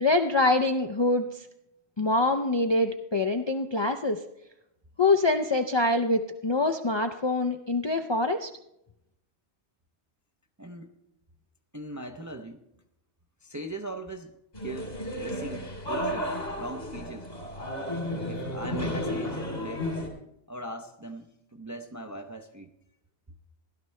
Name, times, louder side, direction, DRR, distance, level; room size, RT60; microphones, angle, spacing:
voice 1, 0.0-1.5 2.0-4.2 5.0-8.5, left 2 dB, 40° left, 5 dB, 0.4 m, -25 dB
voice 2, 10.6-11.0 11.7-12.7 13.4-17.3 18.3-19.9 20.5-22.7, right 1 dB, 25° right, 5 dB, 0.4 m, -40 dB
sound 1, 14.5-20.1, left 1 dB, 75° left, 3.1 m, -33 dB
16.0 x 12.0 x 3.2 m, 0.82 s
omnidirectional pair, 1.1 m